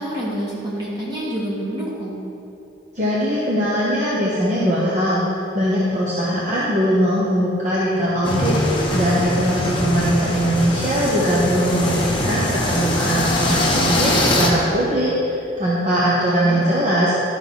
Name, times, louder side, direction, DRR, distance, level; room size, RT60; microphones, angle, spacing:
voice 1, 0.0-2.2 16.4-16.6, equal, 20° right, -7 dB, 2.0 m, -27 dB
voice 2, 2.9-17.2, equal, 40° right, -7 dB, 1.1 m, -21 dB
sound 1, 8.2-14.5, left 1 dB, 25° left, 1.1 m, -22 dB
11.5 x 6.2 x 4.1 m, 2.8 s
head